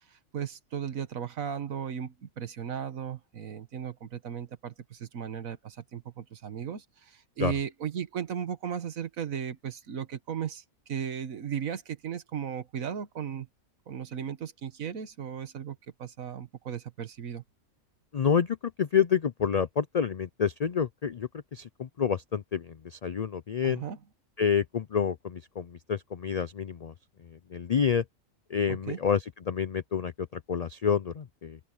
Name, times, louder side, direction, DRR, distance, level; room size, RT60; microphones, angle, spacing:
voice 1, 0.1-13.5 13.9-17.4 23.6-24.0 28.7-29.0, right 8 dB, 85° right, 1.7 m, -36 dB
voice 2, 18.1-23.8 24.4-26.9 27.3-28.0 28.5-31.6, left 7 dB, 85° left, 0.3 m, -28 dB
open air
omnidirectional pair, 1.4 m